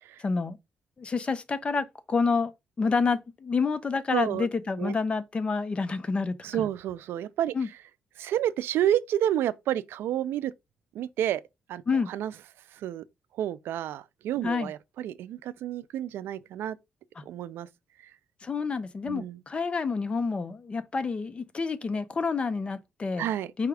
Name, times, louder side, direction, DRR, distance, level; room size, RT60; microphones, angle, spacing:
voice 1, 0.2-0.6 1.0-6.7 7.5-7.7 11.9-12.1 14.4-14.7 18.4-23.3 23.6-23.7, left 4 dB, 30° left, 0.6 m, -28 dB
voice 2, 4.1-4.5 4.8-5.0 6.4-7.5 8.2-10.5 10.9-11.4 11.7-11.8 12.1-12.3 12.8-13.0 13.4-16.8 17.3-17.7 19.1-19.4 23.2-23.5, right 11 dB, 85° right, 0.4 m, -29 dB
4.9 x 2.3 x 4.8 m
cardioid pair, 115°, 4 cm